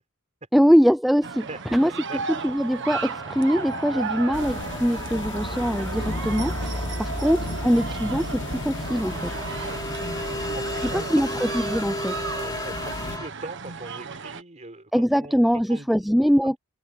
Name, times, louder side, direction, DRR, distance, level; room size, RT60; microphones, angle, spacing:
voice 1, 0.5-1.9 2.4-9.3 10.9-12.2 14.9-16.6, equal, ahead, 0.5 m, -22 dB
sound 1, 1.2-14.4, right 5 dB, 60° right, 1.5 m, -35 dB
voice 2, 1.5-2.2 7.0-7.3 10.3-11.4 12.4-15.4 15.7-16.3, right 2 dB, 35° right, 4.4 m, -41 dB
sound 2, 2.9-13.3, left 1 dB, 20° left, 3.9 m, -34 dB
sound 3, 4.3-13.2, left 3 dB, 55° left, 1.1 m, -36 dB
head